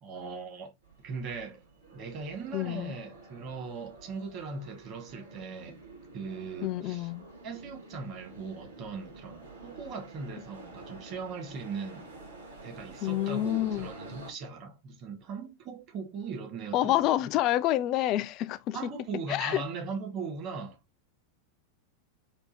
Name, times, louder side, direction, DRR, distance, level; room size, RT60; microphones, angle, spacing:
voice 1, 0.0-0.7 1.0-1.6 1.9-5.8 6.1-7.1 7.4-12.0 12.6-17.0 18.7-20.8, right 5 dB, 40° right, 1.2 m, -39 dB
sound 1, 0.8-14.3, right 2 dB, 70° right, 1.5 m, -49 dB
voice 2, 2.5-2.9 6.6-7.3 13.0-13.9 16.7-18.9 19.3-19.6, left 14 dB, 40° left, 0.3 m, -28 dB
3.4 x 2.3 x 4.3 m
figure-of-eight pair, 90°, 0 cm